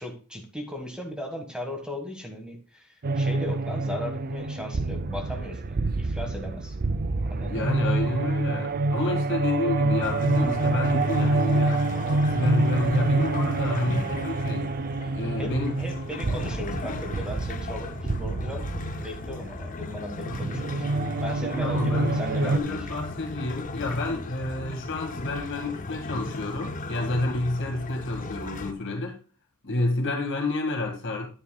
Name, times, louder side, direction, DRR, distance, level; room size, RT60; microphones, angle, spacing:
voice 1, 0.0-6.8 7.2-7.7 15.4-17.9 18.2-18.7 19.0-20.9 21.2-22.8, left 1 dB, 5° right, 1.6 m, -37 dB
sound 1, 3.0-22.6, right 2 dB, 40° right, 0.5 m, -27 dB
voice 2, 7.5-11.8 12.3-14.7 15.1-15.8 21.6-29.2 29.6-31.3, left 2 dB, 55° left, 1.9 m, -29 dB
sound 2, 10.0-28.7, left 3 dB, 35° left, 0.7 m, -37 dB
10.0 x 9.6 x 2.3 m
head